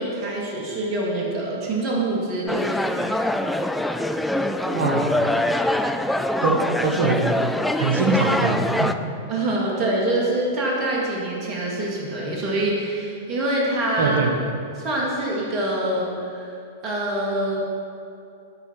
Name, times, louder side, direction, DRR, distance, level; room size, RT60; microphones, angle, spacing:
voice 1, 0.0-3.1 9.3-14.2 14.7-16.5 16.8-17.6, right 1 dB, 35° right, -3 dB, 2.2 m, -25 dB
sound 1, 2.5-8.9, left 1 dB, 5° left, 0.3 m, -24 dB
voice 2, 4.7-5.2 5.5-5.6 6.4-7.3 7.8-8.9 14.0-14.3, right 4 dB, 70° right, 3 dB, 1.1 m, -23 dB
12.0 x 4.8 x 4.5 m, 2.6 s
hypercardioid pair, 105°, 0 cm